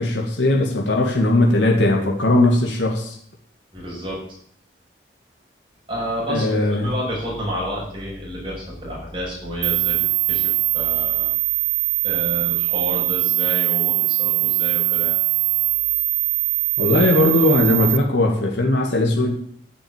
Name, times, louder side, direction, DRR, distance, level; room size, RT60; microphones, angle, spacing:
voice 1, 0.0-3.2 6.3-6.9 16.8-19.3, left 1 dB, 80° left, 0 dB, 2.3 m, -18 dB
voice 2, 3.7-4.2 5.9-10.0 10.3-11.3 12.0-15.2, equal, 25° right, -5 dB, 7.1 m, -30 dB
sound 1, 9.6-18.0, right 17 dB, 75° right, 0.5 m, -21 dB
11.5 x 6.9 x 9.0 m, 0.63 s
head